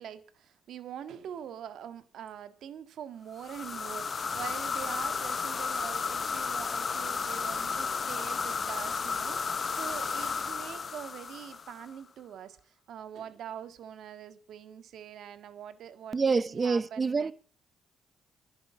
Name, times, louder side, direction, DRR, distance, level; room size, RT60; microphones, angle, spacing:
voice 1, 0.0-17.3, right 9 dB, 70° right, 1.8 m, -44 dB
sound 1, 3.4-11.9, left 5 dB, 40° left, 0.6 m, -33 dB
voice 2, 16.1-17.3, right 4 dB, 30° right, 1.0 m, -27 dB
11.5 x 11.5 x 7.1 m
cardioid pair, 90°, 0 cm